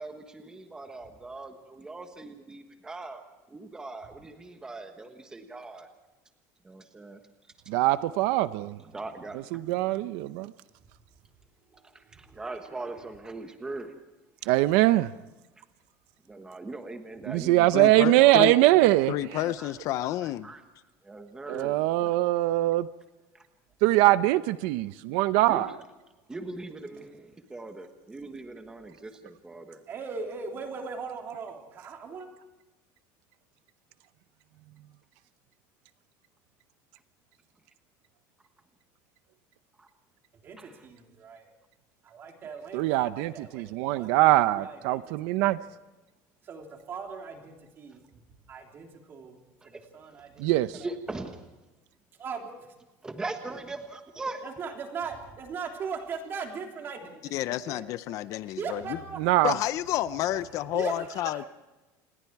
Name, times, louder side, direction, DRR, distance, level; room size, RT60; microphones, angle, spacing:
voice 1, 0.0-3.2 3.5-5.9 6.6-7.2 8.9-10.4 11.7-13.9 14.4-14.5 16.3-18.0 18.2-18.4 19.6-19.7 20.2-20.6 21.0-22.1 23.3-23.4 25.5-25.6 26.3-29.8 39.8-39.9 40.6-40.7 49.6-49.8 50.7-51.4 53.0-54.5, right 2 dB, 10° right, 6 dB, 1.3 m, -40 dB
voice 2, 7.7-8.8 9.3-10.5 14.5-15.1 17.3-19.1 21.5-22.9 23.8-25.7 42.7-45.6 50.4-50.8 59.2-59.5, right 17 dB, 70° right, 14 dB, 0.6 m, -22 dB
voice 3, 17.7-18.5 19.1-20.5 57.3-59.0 59.4-61.4, left 14 dB, 45° left, 15 dB, 0.6 m, -30 dB
voice 4, 29.9-32.3 40.4-41.5 42.0-45.7 46.4-48.2 48.5-49.4 49.6-50.5 52.1-52.7 54.4-57.8 58.5-59.2 60.3-61.5, right 5 dB, 30° right, 2 dB, 3.3 m, -39 dB
28.5 x 20.5 x 4.7 m, 1.1 s
cardioid pair, 175°, 8 cm